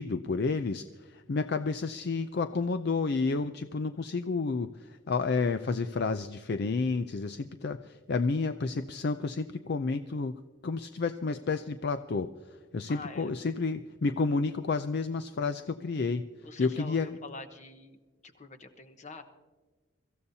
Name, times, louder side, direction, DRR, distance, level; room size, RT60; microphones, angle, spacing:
voice 1, 0.0-16.2 16.6-17.2, left 4 dB, 55° left, 10 dB, 0.4 m, -30 dB
voice 2, 12.9-13.3 16.4-18.0 18.2-19.2, left 3 dB, 35° left, 8 dB, 1.1 m, -45 dB
24.0 x 14.5 x 2.8 m, 1.3 s
head